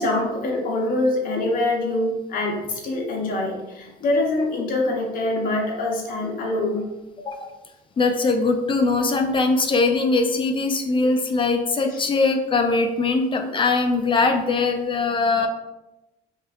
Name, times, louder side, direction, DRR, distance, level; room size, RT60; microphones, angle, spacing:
voice 1, 0.0-6.9 11.9-12.0 15.1-15.2, left 2 dB, 55° left, 0 dB, 1.0 m, -24 dB
voice 2, 7.2-7.6 8.0-15.5, left 3 dB, 30° left, 5 dB, 0.4 m, -21 dB
5.3 x 2.5 x 2.5 m, 1.0 s
cardioid pair, 110°, 17 cm